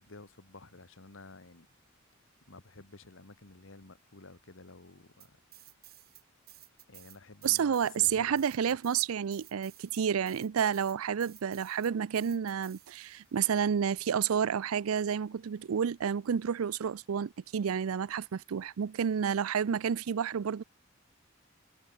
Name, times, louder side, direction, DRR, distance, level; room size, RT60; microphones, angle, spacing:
voice 1, 0.0-1.7 2.5-5.4 6.9-8.8, left 3 dB, 65° left, 1.8 m, -52 dB
sound 1, 5.2-6.2 6.5-13.3, right 15 dB, 50° right, 2.9 m, -55 dB
voice 2, 7.4-20.6, right 7 dB, 85° right, 0.4 m, -30 dB
head